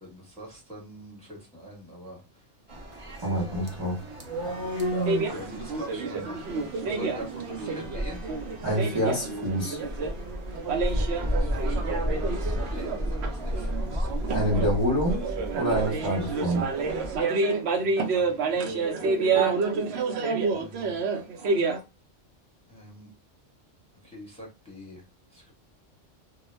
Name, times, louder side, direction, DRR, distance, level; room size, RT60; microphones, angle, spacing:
voice 1, 0.0-2.2 3.2-3.8 4.9-8.2 11.3-14.2 17.8-19.5 20.5-21.0 22.7-23.1 24.0-25.0 25.3-25.5, equal, 5° left, 0.9 m, -44 dB
sound 1, 2.7-17.2, equal, 50° right, 0.4 m, -33 dB
sound 2, 3.2-11.2, right 1 dB, 45° left, 0.7 m, -37 dB
voice 2, 3.2-4.0 8.6-9.8 14.3-15.2 15.6-16.7, equal, 25° right, 0.8 m, -26 dB
sound 3, 5.1-21.8, right 4 dB, 65° right, 0.8 m, -29 dB
2.2 x 2.1 x 3.1 m
omnidirectional pair, 1.2 m